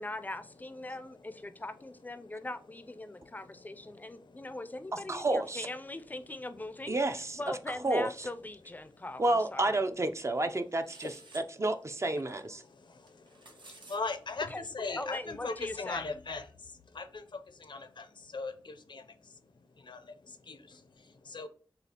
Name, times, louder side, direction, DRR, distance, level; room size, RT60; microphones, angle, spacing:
voice 1, 0.0-7.0 7.4-9.8 14.5-14.6 15.0-16.0, left 2 dB, 20° left, 0.4 m, -41 dB
voice 2, 0.8-2.5 3.0-5.3 6.0-7.2 8.8-9.1 11.0-11.7 12.2-21.5, left 3 dB, 80° left, 0.6 m, -43 dB
voice 3, 5.1-5.7 6.9-7.4 7.8-8.3 9.2-11.1 11.6-12.6, right 2 dB, 35° right, 0.4 m, -30 dB
sound 1, 10.8-11.5 13.1-14.0, right 2 dB, 85° right, 0.9 m, -52 dB
6.6 x 2.4 x 2.8 m
wide cardioid pair, 80°, 8 cm